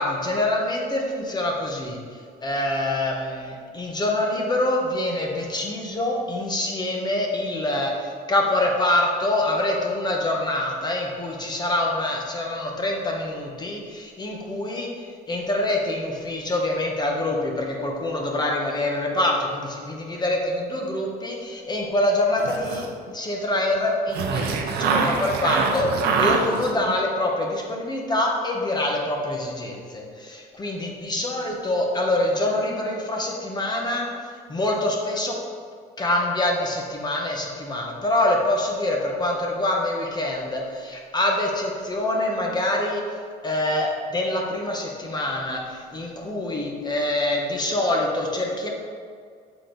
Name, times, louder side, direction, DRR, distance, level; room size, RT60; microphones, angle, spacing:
voice 1, 0.0-2.0 2.4-14.9 15.3-22.9 23.1-34.1 34.5-35.4 36.0-43.0 43.4-48.7, left 1 dB, 25° left, 0 dB, 1.1 m, -25 dB
sound 1, 22.4-23.1 24.1-26.9, right 5 dB, 70° right, 0.7 m, -24 dB
6.9 x 4.1 x 3.9 m, 2.1 s
cardioid pair, 110°, 17 cm